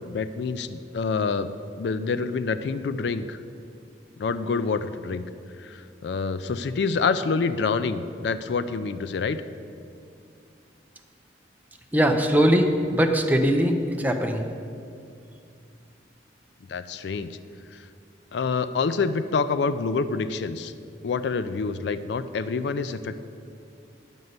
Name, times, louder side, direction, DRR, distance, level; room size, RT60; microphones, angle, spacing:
voice 1, 0.0-1.5 1.8-3.4 4.2-5.3 5.6-9.4 16.7-17.4 17.7-17.8 18.3-20.7 21.0-23.2, left 4 dB, 65° left, 12 dB, 0.4 m, -27 dB
voice 2, 11.9-14.4, equal, 10° right, 4 dB, 0.6 m, -21 dB
9.9 x 5.4 x 7.9 m, 2.4 s
head